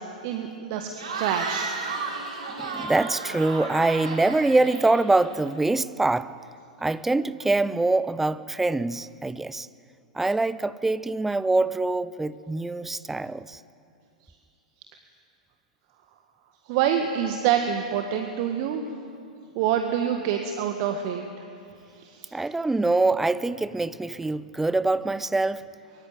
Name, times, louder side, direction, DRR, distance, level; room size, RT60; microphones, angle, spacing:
voice 1, 0.2-0.9 1.2-1.8 16.7-18.8 19.6-21.2 21.9-22.4, right 9 dB, 40° right, 1.7 m, -26 dB
Cheering / Crowd, 0.9-5.6, right 4 dB, 60° right, 5.0 m, -34 dB
voice 2, 2.6-6.3 6.8-9.7 10.1-13.6 22.3-25.6, right 2 dB, 5° right, 0.7 m, -24 dB
24.0 x 23.0 x 9.2 m
figure-of-eight pair, 100°, 4 cm